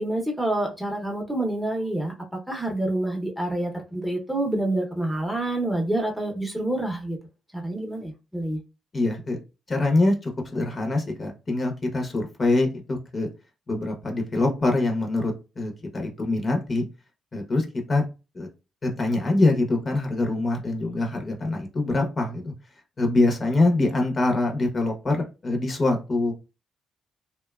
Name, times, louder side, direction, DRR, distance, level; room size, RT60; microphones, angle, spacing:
voice 1, 0.0-2.1 2.5-7.2 7.5-8.6, right 1 dB, 5° right, 0.7 m, -27 dB
voice 2, 8.9-9.4 9.7-13.3 13.7-16.8 17.3-18.0 18.3-18.5 18.8-22.5 23.0-26.3, left 2 dB, 35° left, 0.7 m, -24 dB
2.7 x 2.2 x 2.3 m
cardioid pair, 90°, 0 cm